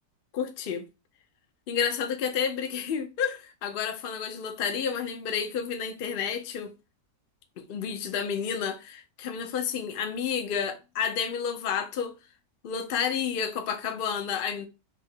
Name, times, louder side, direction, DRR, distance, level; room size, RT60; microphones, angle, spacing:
voice 1, 0.3-0.8 1.7-6.7 7.6-12.1 12.6-14.7, left 7 dB, 70° left, 0.5 m, -30 dB
3.6 x 2.8 x 4.4 m
omnidirectional pair, 1.8 m